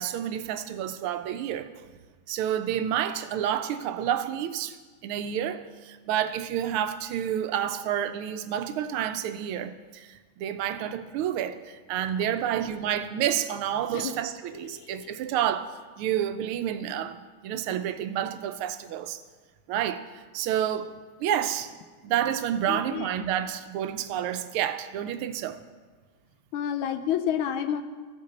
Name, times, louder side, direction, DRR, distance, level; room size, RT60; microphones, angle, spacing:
voice 1, 0.0-1.7 2.3-4.8 5.0-15.7 16.0-17.2 17.4-19.2 19.7-20.9 21.2-21.8 22.0-25.6, right 10 dB, 85° right, 1.5 m, -29 dB
voice 2, 14.5-15.1 22.7-23.1 26.5-27.8, left 9 dB, 80° left, 1.4 m, -30 dB
15.0 x 5.3 x 4.0 m
omnidirectional pair, 2.3 m